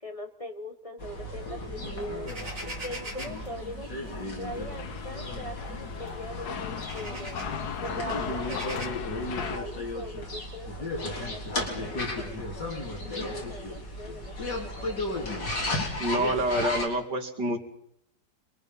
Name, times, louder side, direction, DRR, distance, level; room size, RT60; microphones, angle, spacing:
voice 1, 0.0-2.3 2.6-3.9 4.4-7.4 7.8-15.5, equal, 20° left, 4 dB, 1.4 m, -41 dB
sound 1, 1.0-16.9, left 1 dB, 85° left, 4.2 m, -34 dB
sound 2, 2.3-3.5 4.6-4.8 5.2-5.3 6.1-6.2 6.6-7.6 8.3-8.9, right 1 dB, 50° right, 3.2 m, -41 dB
sound 3, 4.4-9.6, left 7 dB, 65° left, 1.6 m, -37 dB
voice 2, 16.0-17.6, right 1 dB, 85° right, 4 dB, 3.0 m, -27 dB
26.5 x 22.0 x 5.5 m, 0.73 s
omnidirectional pair, 1.8 m